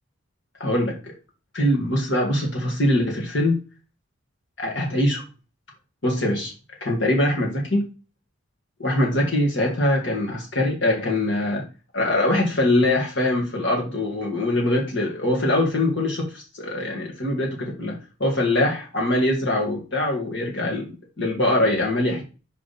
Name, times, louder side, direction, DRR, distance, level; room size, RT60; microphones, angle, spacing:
voice 1, 0.6-1.1 1.5-3.6 4.6-5.2 6.0-6.5 6.8-7.8 8.8-11.7 11.9-22.2, left 1 dB, 55° left, -1 dB, 1.8 m, -23 dB
5.5 x 5.0 x 4.1 m, 0.32 s
head